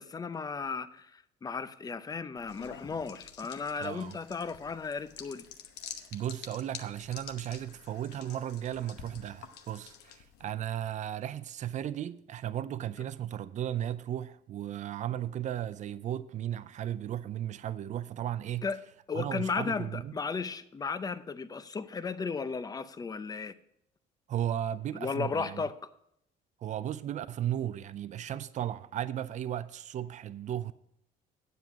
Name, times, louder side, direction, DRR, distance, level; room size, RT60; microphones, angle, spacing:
voice 1, 0.0-5.5 18.6-18.8 19.1-23.5 24.9-25.9, left 5 dB, 20° left, 0.6 m, -35 dB
sound 1, 2.4-10.5, left 8 dB, 85° left, 1.0 m, -48 dB
voice 2, 3.8-4.2 6.1-18.7 19.1-20.1 24.3-25.6 26.6-30.7, right 11 dB, 45° right, 0.5 m, -35 dB
9.3 x 7.6 x 4.8 m
cardioid pair, 110°, 17 cm